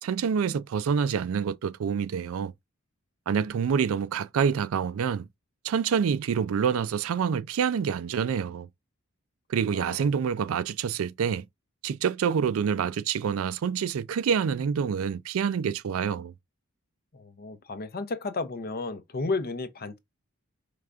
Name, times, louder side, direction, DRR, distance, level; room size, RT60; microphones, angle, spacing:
voice 1, 0.0-2.5 3.3-5.3 5.6-8.7 9.5-11.5 11.8-16.3, right 7 dB, 70° right, 0.3 m, -27 dB
voice 2, 17.1-20.0, left 3 dB, 45° left, 0.6 m, -33 dB
4.9 x 3.3 x 2.4 m
head